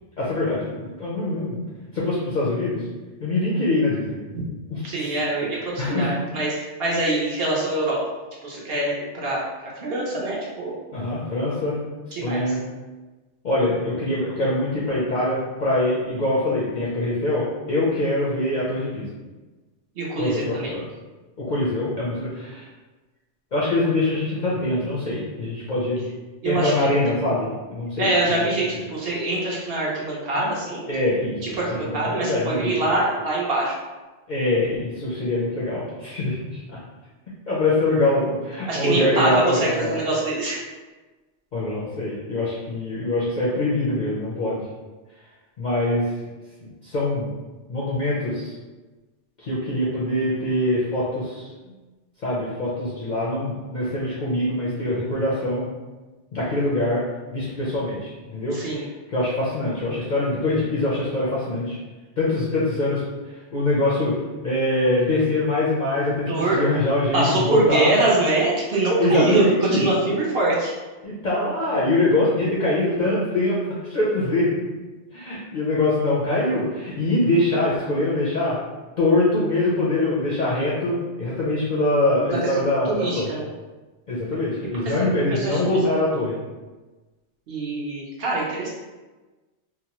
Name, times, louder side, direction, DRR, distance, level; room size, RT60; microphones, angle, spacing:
voice 1, 0.2-1.6 1.9-2.8 3.2-4.2 4.7-5.1 5.8-6.1 10.9-11.8 12.2-12.6 13.4-19.1 20.2-20.8 21.4-22.7 23.5-26.0 26.4-28.1 30.9-31.4 31.8-32.7 34.3-36.8 37.5-40.0 41.5-44.6 45.6-46.1 46.6-47.3 47.7-48.5 49.4-51.5 52.2-55.7 56.3-57.0 57.3-58.6 59.1-61.8 62.2-63.0 63.5-64.2 64.4-67.9 69.0-69.9 71.0-74.5 75.1-78.6 79.0-83.3 84.1-86.4, left 2 dB, 55° left, -7 dB, 0.5 m, -23 dB
voice 2, 4.8-8.0 8.4-10.7 12.1-12.6 19.9-20.7 26.4-26.9 28.0-30.9 31.4-33.8 38.7-40.6 58.5-58.9 66.3-66.6 67.1-69.4 69.7-70.7 82.4-83.5 84.8-85.8 87.5-88.7, right 2 dB, 60° right, -5 dB, 0.8 m, -24 dB
2.8 x 2.0 x 2.9 m, 1.2 s
omnidirectional pair, 1.3 m